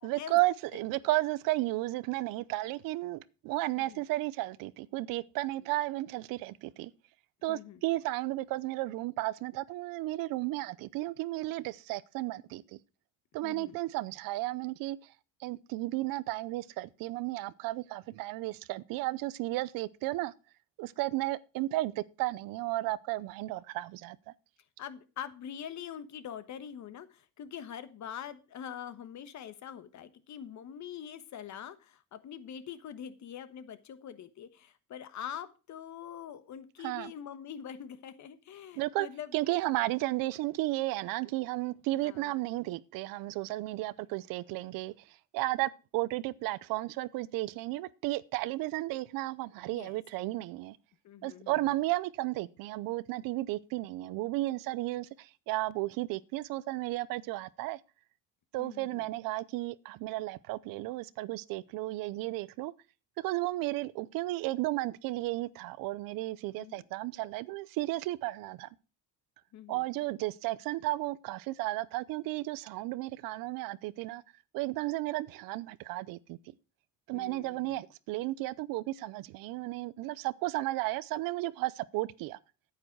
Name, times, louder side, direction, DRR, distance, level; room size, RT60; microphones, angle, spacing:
voice 1, 0.0-6.9 7.4-12.8 13.3-15.0 15.4-20.3 20.8-24.2 36.8-37.1 38.8-39.1 39.3-50.8 51.2-57.8 58.5-62.7 63.2-68.7 69.7-74.2 74.5-76.4 77.1-82.4, right 18 dB, 85° right, 0.6 m, -33 dB
voice 2, 7.5-7.8 13.4-13.8 24.8-39.3 42.0-42.3 49.7-50.0 51.0-51.7 58.6-59.1 66.6-66.8 69.5-69.8 77.1-77.8, left 9 dB, 55° left, 1.3 m, -44 dB
9.3 x 8.8 x 4.6 m
cardioid pair, 100°, 33 cm